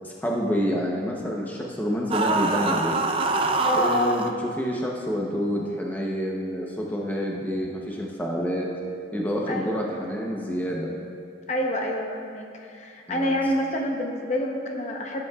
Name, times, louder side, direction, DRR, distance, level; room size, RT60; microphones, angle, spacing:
voice 1, 0.0-3.0 3.7-4.3 4.6-8.7 9.1-10.9 13.1-13.4, equal, 10° left, -2 dB, 0.8 m, -28 dB
sound 1, 2.1-4.3, right 3 dB, 30° right, 0.4 m, -24 dB
voice 2, 3.6-4.2 9.5-9.8 11.5-15.2, left 1 dB, 40° left, 1 dB, 0.8 m, -27 dB
15.5 x 8.3 x 2.4 m, 2.4 s
head